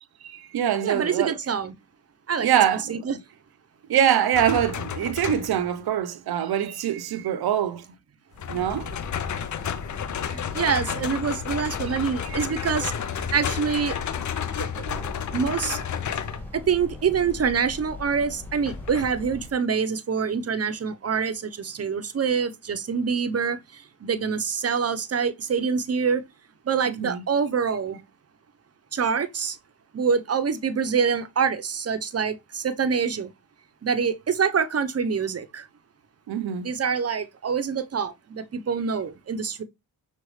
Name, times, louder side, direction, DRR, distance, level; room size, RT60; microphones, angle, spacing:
voice 1, 0.2-1.4 2.4-3.0 3.9-7.8 8.5-9.0 11.9-12.0 12.2-12.6 26.9-27.2 36.3-36.7, right 10 dB, 70° right, 0.7 m, -24 dB
voice 2, 0.8-1.7 2.3-2.5 2.9-3.2 10.3-14.0 14.6-14.9 15.3-15.8 16.5-26.2 26.6-28.0 28.9-29.6 29.9-33.3 33.8-35.7 36.6-39.6, right 6 dB, 40° right, 0.8 m, -26 dB
sound 1, 4.3-5.7 8.4-16.5 18.7-19.1, left 8 dB, 50° left, 0.6 m, -31 dB
sound 2, 8.3-19.5, left 1 dB, 5° left, 1.5 m, -40 dB
6.2 x 2.5 x 3.2 m
cardioid pair, 60°, 38 cm